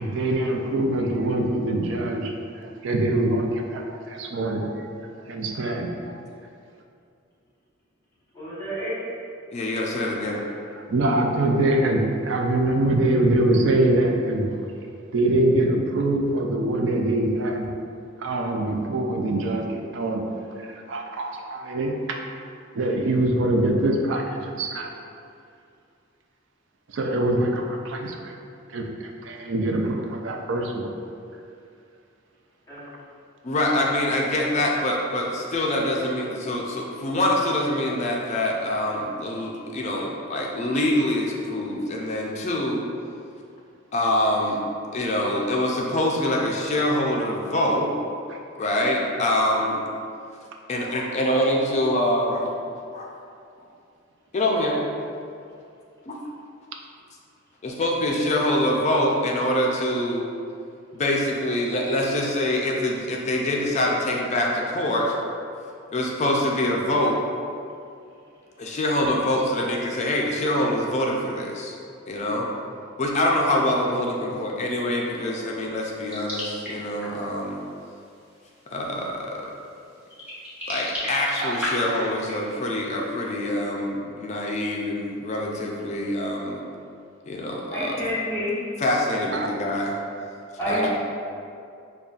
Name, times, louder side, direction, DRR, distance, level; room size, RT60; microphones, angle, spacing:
voice 1, 0.0-4.9 5.3-6.2 10.9-14.6 15.1-17.7 18.2-20.2 20.6-22.2 22.7-24.9 26.9-28.3 28.7-30.9 48.3-48.4 81.4-81.6 89.3-89.5, right 1 dB, 65° right, 2 dB, 0.4 m, -24 dB
voice 2, 8.3-9.0 32.7-32.9 87.7-88.6 90.6-90.9, equal, 15° left, -11 dB, 1.1 m, -28 dB
voice 3, 9.5-10.4 33.4-42.8 43.9-44.6 44.9-47.9 48.6-49.8 50.7-52.5 52.9-53.1 54.3-54.9 56.1-56.2 57.6-60.2 60.9-65.2 65.9-67.2 68.6-71.8 72.1-72.5 73.0-77.6 78.7-79.5 80.7-86.6 87.3-88.0 88.8-89.9 90.7-90.9, left 1 dB, 35° left, -1 dB, 0.4 m, -25 dB
sound 1, 76.0-77.3 78.3-78.5 79.0-79.1 79.9-82.9, left 1 dB, 10° right, 0.8 m, -33 dB
5.2 x 2.3 x 2.4 m, 2.5 s
head